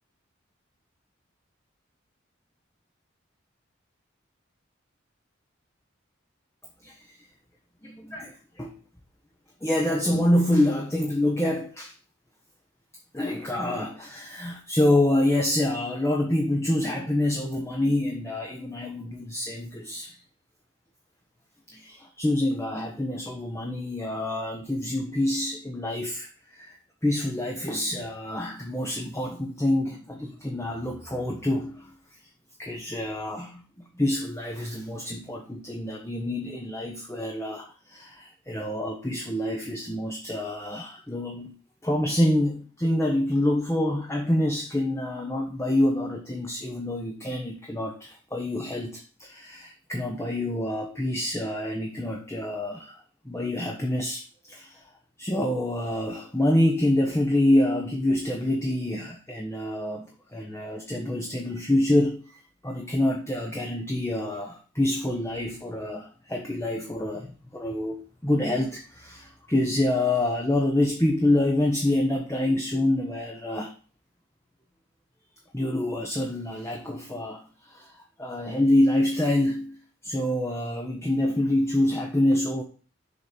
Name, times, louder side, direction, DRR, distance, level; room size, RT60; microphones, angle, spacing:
voice 1, 6.8-7.2 7.8-8.8 9.6-11.9 13.1-20.2 21.7-26.8 27.0-31.9 32.6-33.6 33.9-41.6 41.8-54.9 55.2-73.7 75.5-79.8 80.0-82.6, left 1 dB, 15° left, 1 dB, 0.9 m, -26 dB
7.0 x 3.9 x 6.5 m, 0.37 s
head